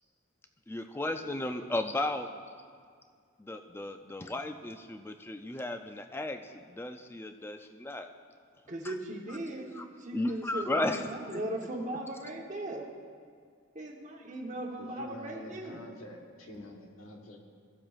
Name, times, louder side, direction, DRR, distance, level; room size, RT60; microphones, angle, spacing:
voice 1, 0.7-2.3 3.4-8.1 8.8-8.9 9.3-9.4 9.7-9.9 10.1-11.0 11.3-11.4, left 2 dB, 10° left, 7 dB, 0.3 m, -34 dB
voice 2, 8.7-9.7 10.0-12.9 13.7-15.8, right 1 dB, 35° right, 0 dB, 1.0 m, -38 dB
voice 3, 14.5-17.4, left 1 dB, 75° left, 1 dB, 1.3 m, -47 dB
16.0 x 7.5 x 2.4 m, 2.1 s
head